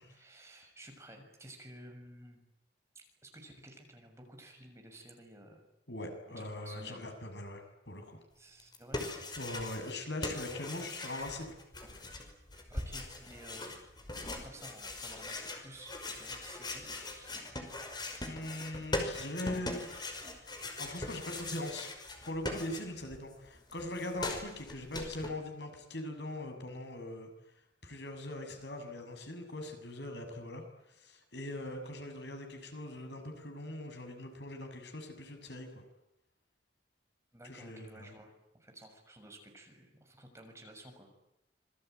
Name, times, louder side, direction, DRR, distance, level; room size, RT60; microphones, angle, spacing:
voice 1, 0.0-2.4 2.9-5.6 6.3-7.1 8.3-9.0 12.7-13.8 14.1-17.5 31.5-31.6 37.3-41.2, right 1 dB, 15° right, 3 dB, 6.8 m, -53 dB
voice 2, 5.9-8.2 9.4-11.5 18.2-19.8 20.4-21.9 22.2-27.3 27.8-35.7 37.5-38.1, left 1 dB, 75° left, 5 dB, 6.9 m, -41 dB
sound 1, 8.6-10.0 10.2-23.2 23.4-25.3, left 2 dB, 25° left, 5.5 m, -41 dB
27.0 x 23.0 x 9.4 m, 0.84 s
head